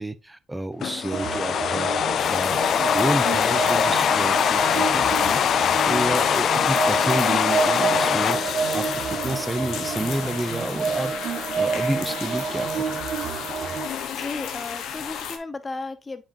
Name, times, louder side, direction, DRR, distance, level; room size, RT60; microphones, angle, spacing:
voice 1, 0.0-1.9 2.3-13.0, right 1 dB, 10° right, 0.7 m, -30 dB
sound 1, 0.8-10.0, left 8 dB, 65° left, 0.3 m, -23 dB
sound 2, 1.1-13.9, right 6 dB, 75° right, 1.3 m, -29 dB
sound 3, 2.2-15.4, left 8 dB, 80° left, 1.0 m, -33 dB
voice 2, 13.7-16.2, left 3 dB, 25° left, 1.1 m, -35 dB
8.6 x 4.9 x 2.7 m
cardioid pair, 90°, 0 cm